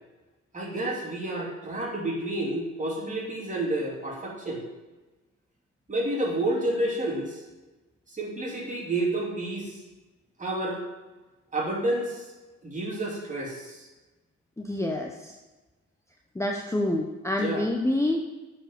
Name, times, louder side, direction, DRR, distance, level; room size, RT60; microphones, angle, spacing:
voice 1, 0.5-4.6 5.9-7.4 8.1-9.8 10.4-10.8 11.5-12.2 12.6-13.9 17.4-17.7, right 1 dB, 25° right, -2 dB, 2.9 m, -30 dB
voice 2, 14.6-15.3 16.3-18.2, left 1 dB, 10° left, 1 dB, 0.8 m, -27 dB
8.5 x 5.2 x 7.1 m, 1.2 s
cardioid pair, 90°, 30 cm